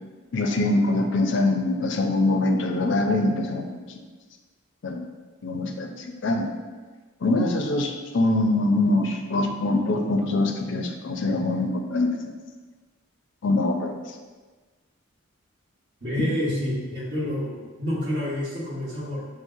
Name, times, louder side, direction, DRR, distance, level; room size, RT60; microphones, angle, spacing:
voice 1, 0.3-3.8 4.8-5.0 5.4-6.5 7.2-12.1 13.4-13.9, left 2 dB, 55° left, 3 dB, 0.4 m, -23 dB
voice 2, 16.0-19.2, left 1 dB, 50° right, -8 dB, 1.3 m, -28 dB
6.1 x 2.0 x 2.6 m, 1.4 s
head